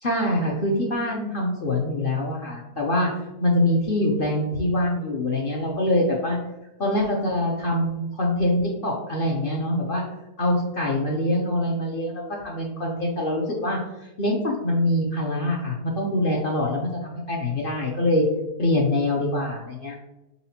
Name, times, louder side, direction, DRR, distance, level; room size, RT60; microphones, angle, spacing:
voice 1, 0.0-3.1 3.4-6.4 6.8-10.0 10.4-13.8 14.2-18.2 18.6-20.0, left 1 dB, 60° left, -1 dB, 0.5 m, -24 dB
4.2 x 3.9 x 2.8 m, 0.94 s
omnidirectional pair, 1.7 m